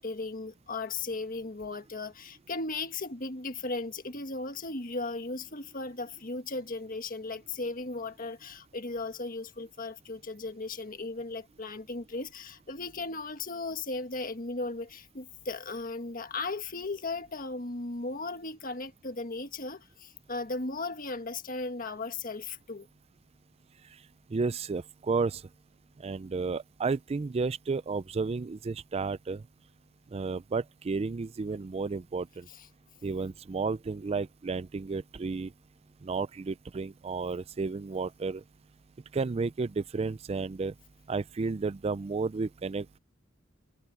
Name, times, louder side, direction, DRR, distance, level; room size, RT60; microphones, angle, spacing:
voice 1, 0.0-22.9 32.5-32.7, left 3 dB, 45° left, 1.6 m, -36 dB
voice 2, 24.3-25.4 26.0-29.4 30.1-32.5 33.0-35.5 36.0-38.4 39.1-40.7 41.1-43.0, right 4 dB, 30° right, 0.4 m, -32 dB
head